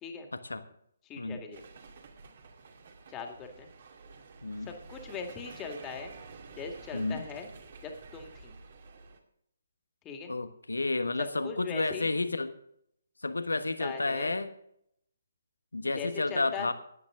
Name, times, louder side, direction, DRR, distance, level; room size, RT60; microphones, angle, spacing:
voice 1, 0.3-0.6 1.2-1.4 4.4-4.7 6.9-7.2 10.3-12.5 13.2-14.5 15.7-16.7, left 3 dB, 80° left, 10 dB, 1.3 m, -31 dB
voice 2, 1.1-1.6 3.1-3.7 4.7-6.1 6.6-7.5 7.8-8.6 10.0-10.3 11.2-12.1 13.8-14.3 15.9-16.7, left 5 dB, 20° left, 4 dB, 2.1 m, -40 dB
sound 1, 1.5-9.2, right 4 dB, 50° right, 2.3 m, -50 dB
17.0 x 10.5 x 3.8 m, 0.71 s
figure-of-eight pair, 140°, 0 cm